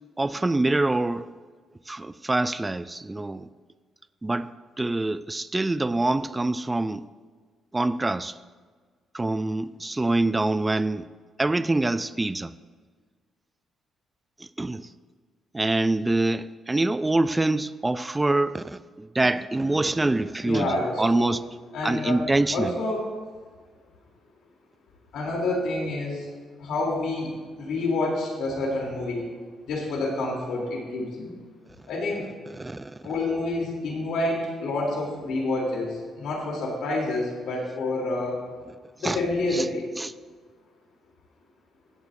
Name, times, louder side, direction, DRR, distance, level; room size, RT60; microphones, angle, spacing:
voice 1, 0.2-1.3 1.9-3.5 4.2-7.1 7.7-8.4 9.1-11.1 11.4-12.5 14.6-14.9 15.5-21.4 21.8-22.8 32.5-33.0 39.0-39.2 39.5-39.7 40.0-40.1, right 2 dB, 15° right, 0.4 m, -25 dB
voice 2, 20.4-21.3 21.7-23.1 25.1-26.2 26.6-27.3 27.6-29.2 29.7-31.3 31.9-32.3 33.0-38.4 39.0-39.9, left 2 dB, 75° left, 3.2 m, -28 dB
16.5 x 8.3 x 2.7 m
cardioid pair, 90°, 0 cm